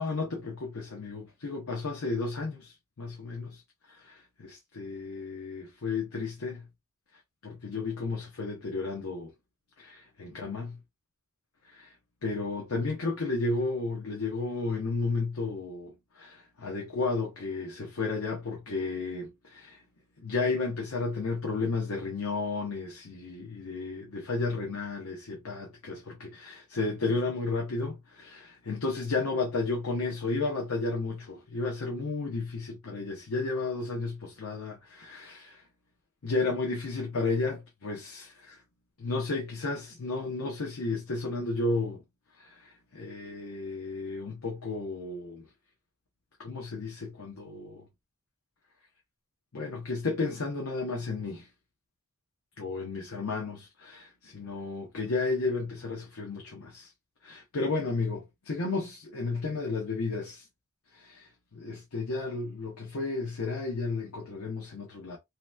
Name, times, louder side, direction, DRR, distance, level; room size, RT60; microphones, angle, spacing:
voice 1, 0.0-3.6 3.9-6.6 7.4-9.3 9.8-10.8 11.6-11.9 12.2-19.8 20.2-35.6 36.2-38.6 39.0-42.0 42.4-45.5 46.4-47.8 49.5-51.5 52.6-56.9 57.2-60.4 60.9-65.2, left 3 dB, 70° left, 0.8 m, -33 dB
3.1 x 2.9 x 2.2 m
head